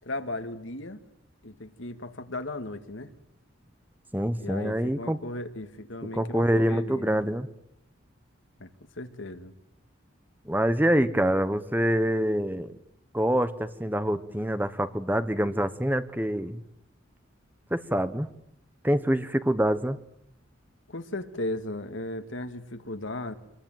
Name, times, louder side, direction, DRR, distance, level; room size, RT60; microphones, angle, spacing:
voice 1, 0.0-1.0 1.4-3.1 4.4-7.1 8.6-8.7 8.9-9.5 20.9-23.3, left 2 dB, 75° left, 7 dB, 2.2 m, -36 dB
voice 2, 4.1-5.2 6.1-7.5 10.5-12.7 13.1-16.6 17.7-18.3 18.8-20.0, equal, 10° right, 11 dB, 1.1 m, -25 dB
26.5 x 21.5 x 9.2 m, 0.76 s
head